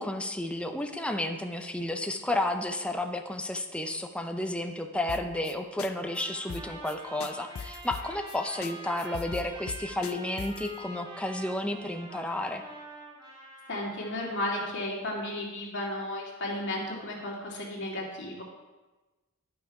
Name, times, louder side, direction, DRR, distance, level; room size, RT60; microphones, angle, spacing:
voice 1, 0.0-12.6, left 1 dB, 5° left, 5 dB, 0.5 m, -32 dB
sound 1, 5.1-5.5 5.8-5.9 6.2-6.3 6.5-8.4 8.6-8.7 9.0-10.7, left 6 dB, 75° left, 0.5 m, -39 dB
Trumpet, 5.9-14.5, right 1 dB, 25° right, 1.8 m, -45 dB
voice 2, 13.7-18.4, left 1 dB, 60° left, -3 dB, 2.3 m, -34 dB
11.5 x 5.7 x 4.8 m, 1.2 s
head